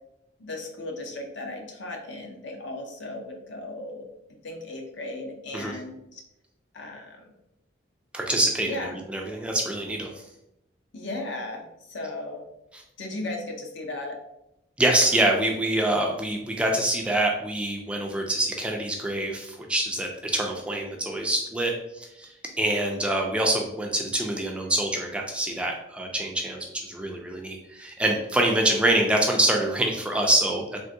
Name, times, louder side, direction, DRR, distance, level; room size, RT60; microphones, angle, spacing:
voice 1, 0.4-4.1 4.4-6.2 6.7-7.3 8.7-8.9 10.9-11.6 11.9-12.4 13.0-14.2 15.0-15.4, left 2 dB, 75° left, 2 dB, 0.6 m, -36 dB
voice 2, 8.1-8.7 9.1-10.1 14.8-22.3 22.6-30.8, right 1 dB, 5° right, 0 dB, 0.3 m, -25 dB
3.5 x 2.5 x 2.6 m, 0.83 s
head